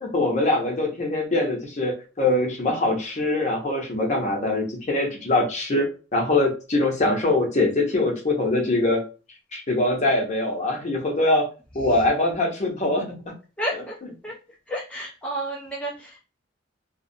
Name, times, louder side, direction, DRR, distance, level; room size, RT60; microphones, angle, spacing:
voice 1, 0.0-9.0 9.5-11.5 11.7-13.0, left 2 dB, 40° left, 1 dB, 0.7 m, -23 dB
voice 2, 13.6-13.9 14.2-14.3 14.7-16.2, right 1 dB, 5° left, -4 dB, 0.4 m, -31 dB
2.3 x 2.1 x 2.6 m, 0.33 s
head